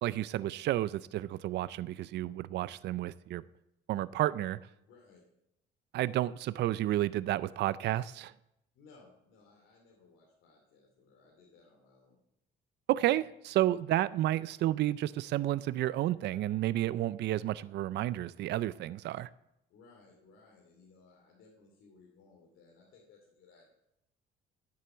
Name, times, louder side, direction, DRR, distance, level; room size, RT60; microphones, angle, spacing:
voice 1, 0.0-3.4 3.9-4.6 5.9-8.3 12.9-19.3, right 14 dB, 60° right, 0.4 m, -31 dB
voice 2, 4.9-5.2 8.7-12.2 19.7-23.7, left 4 dB, 80° left, 2.7 m, -61 dB
10.0 x 7.8 x 7.8 m
cardioid pair, 115°, 20 cm